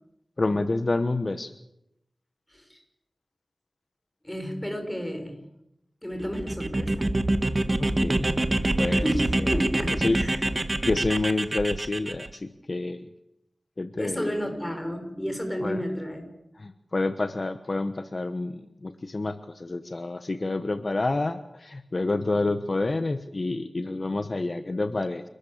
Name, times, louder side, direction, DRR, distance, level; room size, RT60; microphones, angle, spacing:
voice 1, 0.4-1.5 7.8-8.3 8.8-9.1 9.4-9.6 10.0-10.2 10.9-13.0 13.8-14.3 15.6-15.8 16.6-18.5 18.8-25.2, left 2 dB, 45° left, 10 dB, 1.1 m, -28 dB
voice 2, 4.2-5.4 6.0-7.1 9.0-10.4 14.0-16.3, equal, 10° left, 5 dB, 6.4 m, -32 dB
sound 1, 6.2-12.3, right 2 dB, 35° right, 1.8 m, -26 dB
29.0 x 13.5 x 8.7 m, 0.84 s
wide cardioid pair, 70°, 0 cm